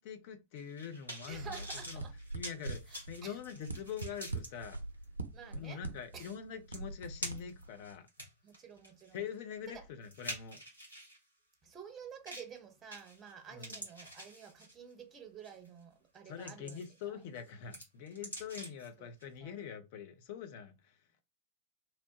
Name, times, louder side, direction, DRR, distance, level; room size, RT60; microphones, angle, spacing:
voice 1, 0.0-2.0 2.3-4.8 5.5-8.1 9.1-10.6 13.5-13.8 16.3-21.0, left 8 dB, 50° left, 0.6 m, -44 dB
sound 1, 0.6-4.5 5.0-5.1 6.3-6.4 6.7-7.6 8.1-11.2 12.3-12.6 12.9-13.3 13.6-14.9 15.4-15.7 16.1-17.0 17.4-18.9 19.2-19.3, equal, 85° left, 1.1 m, -46 dB
voice 2, 1.3-2.1 2.9-3.4 5.3-5.8 6.1-6.3 8.4-9.2 9.7-9.8 11.6-17.2 19.0-19.1 19.4-19.6, right 7 dB, 25° right, 0.7 m, -50 dB
sound 2, 1.3-7.9, right 3 dB, 80° right, 0.4 m, -44 dB
2.8 x 2.1 x 2.8 m
figure-of-eight pair, 90°, 0 cm